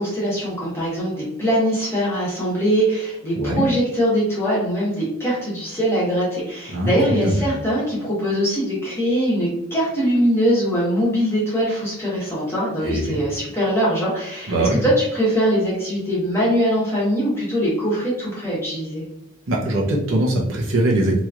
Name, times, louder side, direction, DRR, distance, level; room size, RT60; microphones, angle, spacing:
voice 1, 0.0-19.0, equal, 10° left, -8 dB, 1.3 m, -22 dB
voice 2, 6.7-7.4 12.8-13.2 14.5-14.8 19.5-21.2, right 1 dB, 70° right, -3 dB, 0.8 m, -21 dB
3.1 x 3.0 x 2.4 m, 0.83 s
head